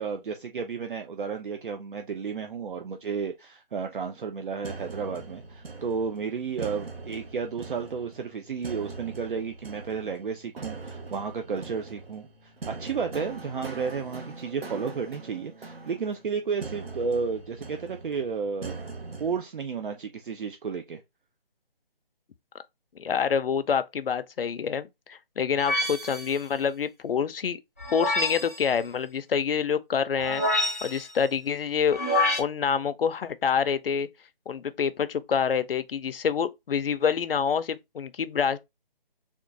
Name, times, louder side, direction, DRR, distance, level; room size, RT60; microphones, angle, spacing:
voice 1, 0.0-18.8 19.2-21.0, right 5 dB, 60° right, 0.6 m, -32 dB
sound 1, 4.6-19.4, right 3 dB, 85° right, 1.1 m, -41 dB
voice 2, 23.0-27.6 27.9-32.0 32.4-34.1 34.5-38.6, left 7 dB, 75° left, 0.6 m, -27 dB
sound 2, 25.6-26.4 27.8-28.6 30.2-31.1 31.9-32.4, left 1 dB, 15° left, 0.4 m, -27 dB
3.6 x 2.4 x 3.9 m
hypercardioid pair, 165°, 29 cm